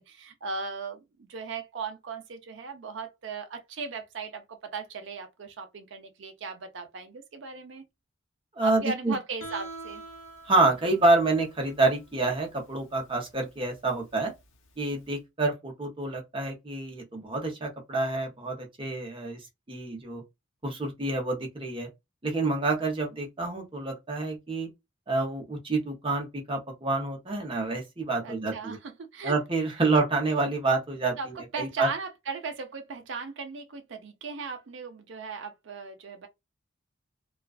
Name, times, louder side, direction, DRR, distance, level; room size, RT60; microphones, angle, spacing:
voice 1, 0.0-7.8 8.6-10.0 28.2-29.4 31.2-31.3 31.5-36.3, right 4 dB, 65° right, 0.5 m, -37 dB
voice 2, 8.6-9.2 10.5-14.3 14.8-19.4 19.7-20.2 20.6-21.9 22.2-24.7 25.1-28.8 29.2-31.9, right 3 dB, 25° right, 0.7 m, -28 dB
Guitar, 9.4-15.1, right 2 dB, 75° left, 0.8 m, -46 dB
2.3 x 2.3 x 2.3 m
head